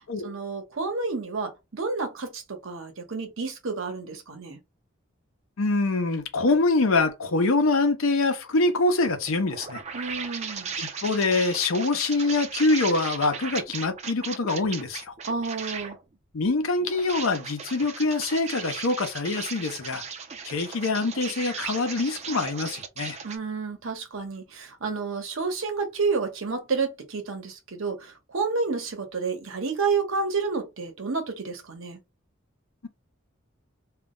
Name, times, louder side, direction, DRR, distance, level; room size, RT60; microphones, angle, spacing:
voice 1, 0.2-4.6 9.9-10.7 15.3-16.0 23.2-32.0, right 4 dB, 80° right, 0.9 m, -30 dB
voice 2, 5.6-9.8 10.8-15.1 16.3-20.0 20.4-23.2, left 3 dB, 90° left, 0.7 m, -24 dB
sound 1, 9.1-16.0 16.8-23.4, right 6 dB, 35° right, 0.4 m, -37 dB
2.3 x 2.0 x 3.6 m
head